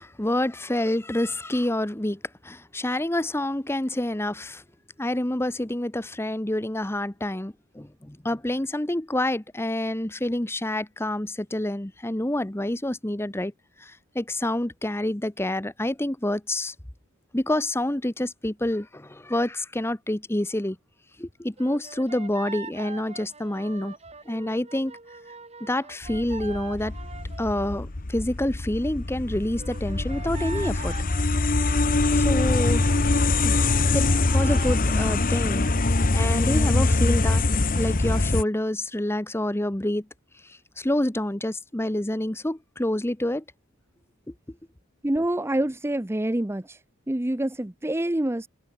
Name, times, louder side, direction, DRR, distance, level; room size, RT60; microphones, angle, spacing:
voice 1, 0.0-4.6 5.0-13.5 13.8-16.7 17.3-20.8 21.2-23.9 24.3-25.0 25.6-26.9 27.4-30.9 32.2-32.9 33.4-33.6 33.9-37.4 37.7-40.1 40.8-43.4, left 1 dB, 10° left, 0.9 m, -28 dB
sound 1, 21.6-27.8 29.6-35.8, right 4 dB, 30° right, 3.5 m, -43 dB
sound 2, 26.0-38.4, left 2 dB, 40° left, 1.0 m, -23 dB
voice 2, 45.0-46.8 47.1-48.5, right 1 dB, 10° right, 0.6 m, -26 dB
head